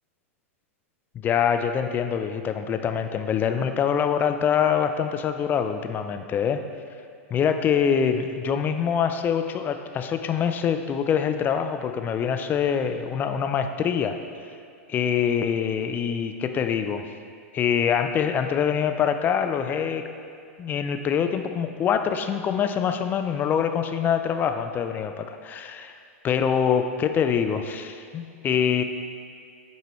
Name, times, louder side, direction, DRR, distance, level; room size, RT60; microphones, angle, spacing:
voice 1, 1.2-6.6 7.3-14.2 14.9-17.1 17.5-20.0 20.6-25.9 26.2-28.8, left 7 dB, 25° left, 8 dB, 0.4 m, -24 dB
8.2 x 4.5 x 3.1 m, 2.4 s
hypercardioid pair, 120°, 8 cm